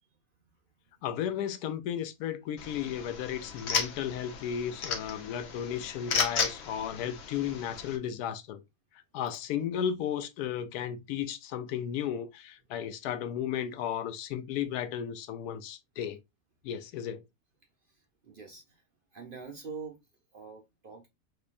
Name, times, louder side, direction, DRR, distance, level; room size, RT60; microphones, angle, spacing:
voice 1, 1.0-8.6 9.1-16.2 16.6-17.2, left 9 dB, 90° left, 1.1 m, -34 dB
sound 1, 2.6-8.0, left 5 dB, 55° left, 0.8 m, -34 dB
voice 2, 18.2-18.8 19.1-20.0 20.3-21.1, right 5 dB, 50° right, 0.6 m, -44 dB
3.8 x 3.2 x 2.5 m
omnidirectional pair, 1.6 m